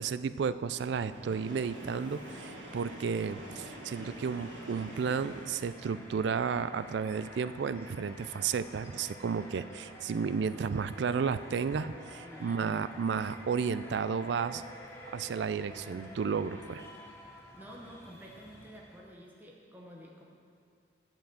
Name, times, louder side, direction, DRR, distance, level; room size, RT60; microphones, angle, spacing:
voice 1, 0.0-14.6 15.1-16.9, right 6 dB, 65° right, 14 dB, 0.3 m, -32 dB
sound 1, 0.7-19.2, equal, 15° left, 1.1 m, -50 dB
Train, 1.0-6.0, equal, 85° right, 1.4 m, -47 dB
voice 2, 12.2-12.7 17.5-20.2, equal, 10° right, -2 dB, 0.8 m, -50 dB
8.7 x 5.9 x 7.6 m, 2.2 s
head